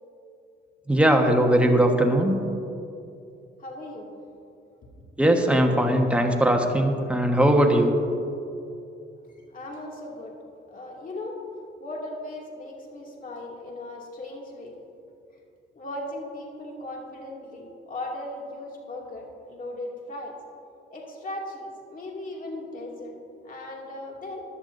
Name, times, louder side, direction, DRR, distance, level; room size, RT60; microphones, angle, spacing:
voice 1, 0.9-2.3 5.2-7.9, right 1 dB, 5° right, 2 dB, 1.3 m, -20 dB
voice 2, 3.6-4.1 9.5-10.4 10.7-11.4 11.8-14.7 15.3-15.4 15.7-20.3 20.9-23.2 23.4-24.4, left 1 dB, 45° left, -1 dB, 2.5 m, -37 dB
15.5 x 11.0 x 2.7 m, 2.6 s
cardioid pair, 90°, 20 cm